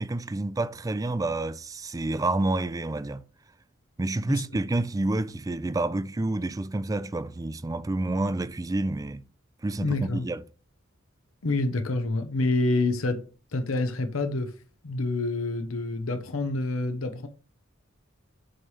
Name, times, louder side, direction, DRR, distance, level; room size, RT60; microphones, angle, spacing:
voice 1, 0.0-3.2 4.0-9.2 9.6-10.4, right 2 dB, 15° right, 0.4 m, -29 dB
voice 2, 9.8-10.3 11.4-13.3 13.5-14.5 14.8-17.3, left 2 dB, 90° left, 0.9 m, -27 dB
7.7 x 3.2 x 5.5 m
head